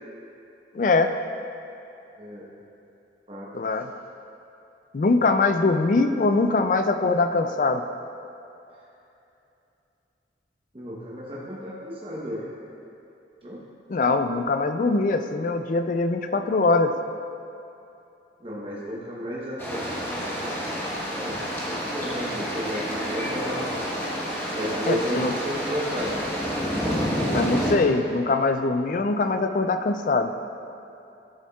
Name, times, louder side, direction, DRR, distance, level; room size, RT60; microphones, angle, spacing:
voice 1, 0.7-1.1 3.5-3.9 4.9-7.8 13.9-17.0 24.9-25.3 27.3-30.3, left 3 dB, 45° left, 8 dB, 0.3 m, -22 dB
voice 2, 2.2-2.5 3.3-3.5 10.7-12.4 13.4-13.6 18.4-20.7 21.1-23.7 24.6-26.2, equal, 30° right, -7 dB, 1.0 m, -33 dB
sound 1, 19.6-27.7, equal, 10° left, 1.1 m, -29 dB
13.5 x 7.1 x 2.4 m, 2.8 s
head